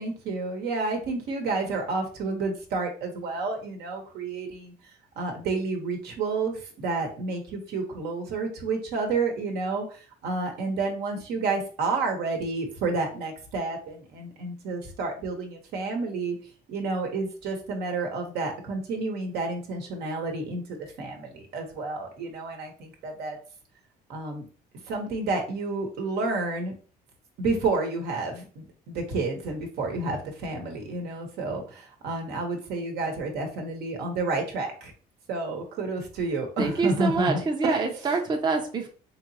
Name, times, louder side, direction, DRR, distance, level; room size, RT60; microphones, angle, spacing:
voice 1, 0.0-4.7 5.2-9.8 10.2-16.4 16.7-23.4 24.1-24.4 24.9-26.7 27.4-34.9 35.3-37.9, right 3 dB, 75° right, 2 dB, 1.0 m, -30 dB
voice 2, 36.6-38.9, right 4 dB, 25° right, 3 dB, 0.5 m, -26 dB
3.6 x 2.9 x 2.7 m, 0.40 s
cardioid pair, 110°, 17 cm